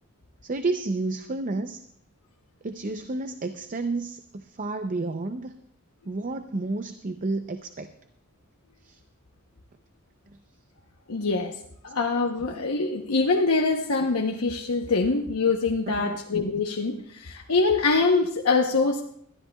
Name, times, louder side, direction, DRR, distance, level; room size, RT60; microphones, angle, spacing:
voice 1, 0.4-1.8 2.6-5.5 6.1-7.9 8.8-9.0 16.0-16.2, right 3 dB, 40° right, 8 dB, 0.6 m, -30 dB
voice 2, 11.1-11.5 11.8-19.0, left 3 dB, 85° left, 2 dB, 0.9 m, -24 dB
21.5 x 13.0 x 2.3 m, 0.69 s
head